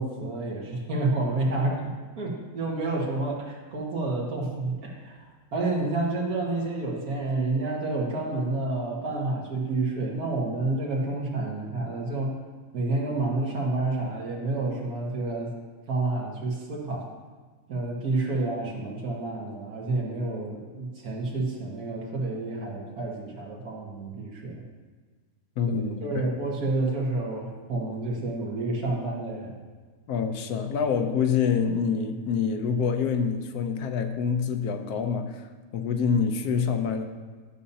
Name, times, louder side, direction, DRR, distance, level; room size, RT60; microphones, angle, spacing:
voice 1, 0.0-1.8 2.2-12.3 12.7-15.5 15.9-17.1 17.7-24.6 26.0-29.5, right 2 dB, 80° right, -2 dB, 2.1 m, -29 dB
voice 2, 25.6-26.3 30.1-37.1, left 6 dB, 80° left, 6 dB, 1.2 m, -26 dB
12.0 x 6.8 x 2.8 m, 1.5 s
omnidirectional pair, 1.6 m